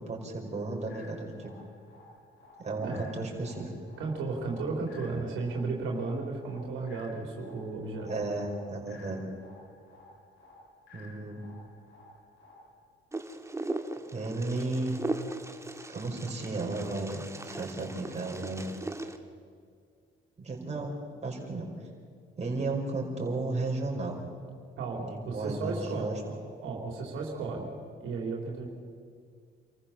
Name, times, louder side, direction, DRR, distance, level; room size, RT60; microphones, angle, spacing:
voice 1, 0.0-1.5 2.6-3.7 8.1-9.2 10.9-11.5 14.1-15.0 15.9-18.7 20.4-21.0 21.2-21.7 22.4-24.2 25.1-26.2, right 2 dB, 35° right, -1 dB, 5.3 m, -34 dB
sound 1, 0.9-12.9, left 2 dB, 75° left, 3.3 m, -55 dB
voice 2, 4.0-8.1 24.8-27.7 28.0-28.7, right 3 dB, 90° right, 0 dB, 3.7 m, -34 dB
Wind, 13.1-19.2, right 2 dB, 15° right, 1.7 m, -38 dB
27.0 x 15.0 x 7.3 m, 2.2 s
cardioid pair, 90°, 20 cm